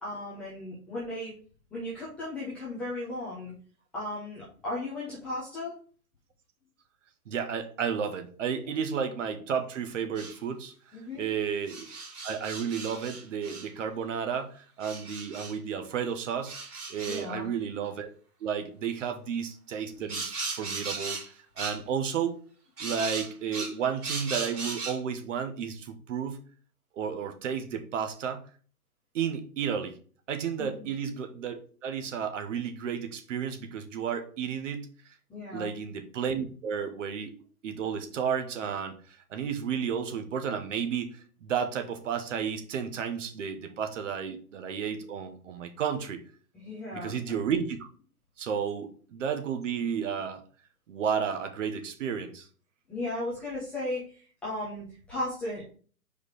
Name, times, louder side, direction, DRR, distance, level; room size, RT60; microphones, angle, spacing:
voice 1, 0.0-1.3 1.7-3.5 3.9-5.7 10.9-11.3 17.0-17.4 30.6-30.7 35.3-35.7 46.5-47.1 52.9-55.6, left 1 dB, 5° left, -9 dB, 0.4 m, -36 dB
voice 2, 7.3-10.7 11.2-11.9 12.2-16.6 16.9-18.1 18.4-21.2 21.6-22.4 22.8-26.4 27.0-28.5 29.1-30.0 30.3-34.9 35.5-37.3 37.6-39.0 39.3-46.2 46.9-47.8 48.4-50.4 50.9-52.5, right 7 dB, 50° right, 8 dB, 1.2 m, -32 dB
sound 1, 10.2-10.4 11.7-13.7 14.8-15.5 16.5-17.3 20.1-21.3 21.6-21.8 22.8-25.0, right 4 dB, 75° right, 3.0 m, -37 dB
4.9 x 4.6 x 4.8 m, 0.42 s
figure-of-eight pair, 125°, 46 cm